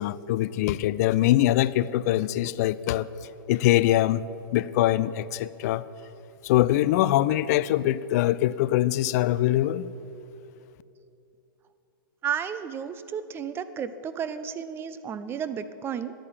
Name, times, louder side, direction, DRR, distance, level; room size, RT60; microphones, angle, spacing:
voice 1, 0.0-3.1 3.5-4.2 4.5-5.8 6.4-9.8, left 14 dB, 45° left, 17 dB, 0.4 m, -23 dB
voice 2, 12.2-16.1, right 8 dB, 20° right, 12 dB, 0.5 m, -32 dB
10.5 x 8.5 x 7.6 m, 2.7 s
hypercardioid pair, 125°, 12 cm